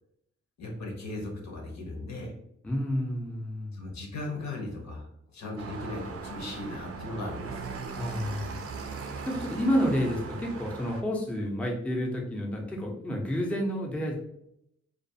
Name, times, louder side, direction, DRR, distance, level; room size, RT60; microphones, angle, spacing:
voice 1, 0.6-2.3 3.7-7.6, left 2 dB, 65° left, 1 dB, 0.7 m, -37 dB
voice 2, 2.6-3.8 8.0-8.6 9.3-14.2, equal, 5° left, -1 dB, 0.5 m, -30 dB
sound 1, 5.6-11.0, right 4 dB, 50° right, 0.4 m, -39 dB
2.4 x 2.3 x 2.7 m, 0.77 s
cardioid pair, 80°, 29 cm